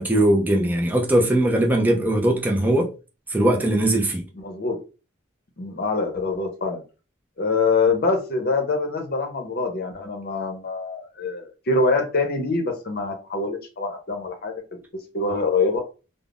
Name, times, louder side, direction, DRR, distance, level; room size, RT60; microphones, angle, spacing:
voice 1, 0.0-2.9 3.3-4.2, right 1 dB, 10° right, 0.3 m, -20 dB
voice 2, 4.3-4.8 5.6-6.8 7.4-14.6 15.1-15.8, left 3 dB, 50° left, 0.7 m, -24 dB
3.5 x 2.0 x 2.4 m
head